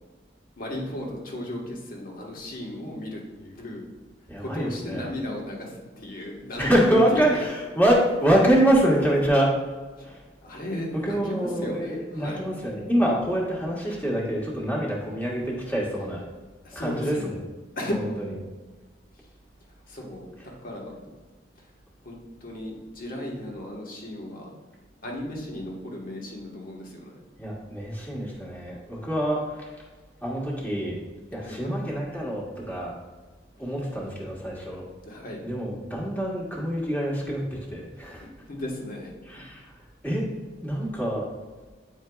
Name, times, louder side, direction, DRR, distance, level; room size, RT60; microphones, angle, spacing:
voice 1, 0.6-3.8 4.4-7.5 10.0-10.1 10.4-12.5 16.6-17.3 17.7-18.0 19.9-21.0 21.6-21.7 22.0-24.5 25.0-27.2 31.4-31.8 33.6-33.7 35.0-35.4 38.2-39.4, left 1 dB, 55° left, -1 dB, 1.3 m, -35 dB
voice 2, 4.3-5.1 6.6-9.5 10.0-10.1 11.0-16.2 16.7-17.4 27.4-29.4 30.2-31.0 31.3-32.9 33.6-34.8 35.4-37.4 37.7-38.3 39.3-39.6 40.0-40.2 40.6-41.3, right 1 dB, 10° left, -4 dB, 1.3 m, -25 dB
9.3 x 4.4 x 2.3 m, 1.3 s
head